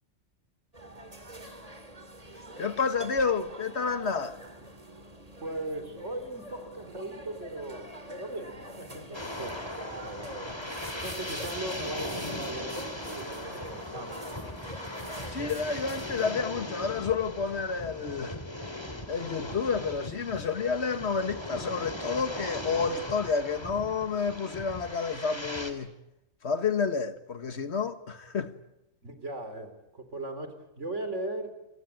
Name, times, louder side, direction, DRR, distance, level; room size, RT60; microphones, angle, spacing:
sound 1, 0.7-16.3, right 1 dB, 30° right, 2.8 m, -45 dB
voice 1, 2.6-4.4 15.3-18.4 19.1-25.9 26.4-28.5, left 5 dB, 60° left, 1.7 m, -30 dB
voice 2, 5.4-9.8 10.0-10.5 11.0-14.2 29.0-31.6, right 2 dB, 75° right, 3.9 m, -38 dB
sound 2, 9.1-25.7, left 1 dB, 20° left, 2.8 m, -39 dB
27.5 x 22.0 x 9.0 m
omnidirectional pair, 1.3 m